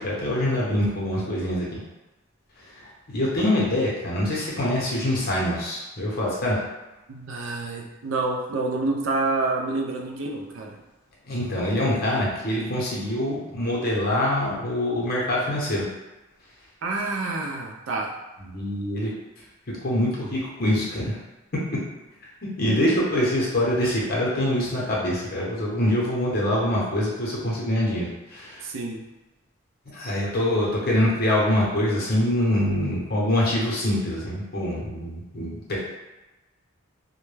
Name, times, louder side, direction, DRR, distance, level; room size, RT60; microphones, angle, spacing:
voice 1, 0.0-1.8 2.8-6.6 11.3-15.8 18.5-19.1 19.8-21.2 22.4-28.7 29.9-35.9, left 1 dB, 45° left, -5 dB, 0.7 m, -24 dB
voice 2, 7.1-10.8 16.8-18.2 22.7-23.0 28.6-29.0, right 3 dB, 65° right, 2 dB, 0.4 m, -28 dB
2.1 x 2.1 x 3.1 m, 1.1 s
head